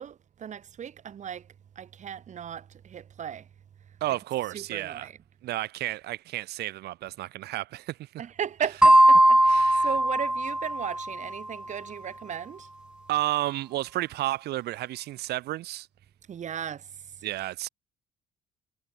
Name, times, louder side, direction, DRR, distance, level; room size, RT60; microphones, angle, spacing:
voice 1, 0.0-1.5 1.8-3.5 4.5-5.2 8.2-12.7 16.3-17.2, right 8 dB, 45° right, 2.2 m, -36 dB
voice 2, 4.0-5.1 5.4-8.1 9.5-9.9 13.1-15.9 17.2-17.7, right 16 dB, 75° right, 1.8 m, -31 dB
sound 1, 8.8-11.3, right 1 dB, 5° right, 1.7 m, -19 dB
cardioid pair, 110°, 17 cm